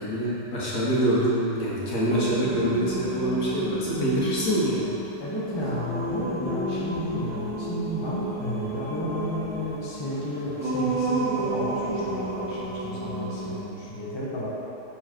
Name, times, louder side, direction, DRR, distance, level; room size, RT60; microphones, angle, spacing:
voice 1, 0.0-5.0, right 1 dB, 50° left, -7 dB, 1.7 m, -25 dB
Singing, 2.0-13.6, right 2 dB, 10° right, 0.6 m, -32 dB
voice 2, 5.2-14.5, equal, 20° left, -8 dB, 1.0 m, -32 dB
7.3 x 4.7 x 4.5 m, 2.9 s
omnidirectional pair, 1.9 m